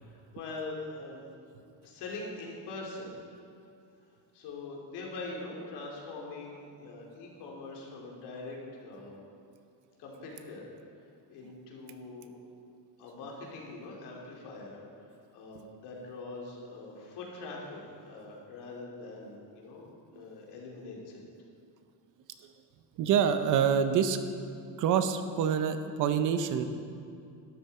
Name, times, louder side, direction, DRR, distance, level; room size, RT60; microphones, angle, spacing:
voice 1, 0.0-1.3 1.8-3.2 4.3-9.2 10.0-10.7 11.3-12.3 13.0-21.2, left 3 dB, 70° left, -2 dB, 3.0 m, -43 dB
voice 2, 23.0-24.2 24.8-26.6, right 8 dB, 50° right, 9 dB, 0.7 m, -26 dB
12.5 x 12.0 x 4.3 m, 2.5 s
cardioid pair, 180°, 41 cm